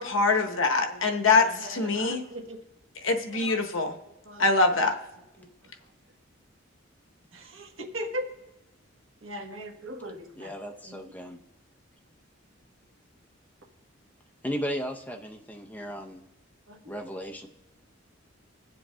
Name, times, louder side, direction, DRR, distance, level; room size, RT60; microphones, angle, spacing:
voice 1, 0.0-2.2 3.0-3.9 4.4-4.9, left 3 dB, 70° left, 4 dB, 0.9 m, -24 dB
voice 2, 0.9-2.6 3.1-3.6 4.2-4.5 5.4-5.5 7.3-8.3 9.2-10.5 10.8-11.0 16.7-16.9, equal, 85° right, 4 dB, 1.2 m, -39 dB
voice 3, 10.4-11.4 14.4-16.2 16.9-17.5, equal, 10° left, 2 dB, 0.7 m, -35 dB
21.5 x 7.6 x 2.3 m, 1.0 s
head